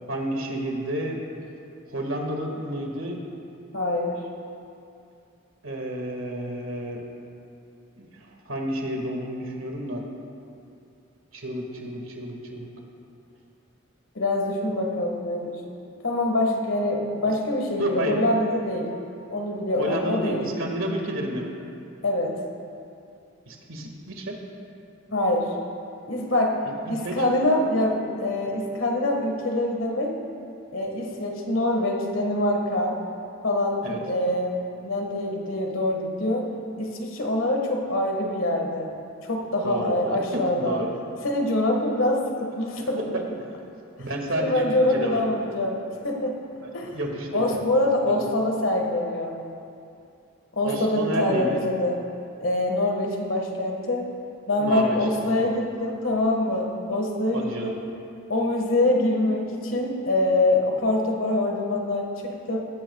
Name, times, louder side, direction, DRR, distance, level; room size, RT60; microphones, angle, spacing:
voice 1, 0.1-1.2 1.9-3.2 5.6-7.0 8.0-8.1 8.5-10.0 11.3-12.7 17.8-18.1 19.8-21.5 23.5-24.4 27.0-27.1 33.8-34.0 39.6-40.9 43.1-43.2 44.0-44.6 44.9-45.3 46.9-47.6 48.0-48.2 50.6-51.7 54.6-55.0 55.3-55.5 57.3-57.7, right 1 dB, 75° right, 1 dB, 1.9 m, -30 dB
voice 2, 3.7-4.2 14.1-15.6 16.0-18.9 19.3-20.4 22.0-22.4 25.1-25.5 26.0-26.6 26.9-30.2 30.7-33.0 33.4-36.5 36.8-38.9 39.2-40.8 41.2-43.2 44.0-44.1 44.3-46.4 46.7-47.0 47.3-49.4 50.5-52.0 52.4-54.1 54.5-57.7 58.3-62.6, left 1 dB, 75° left, 1 dB, 1.7 m, -25 dB
17.5 x 14.0 x 2.4 m, 2.6 s
head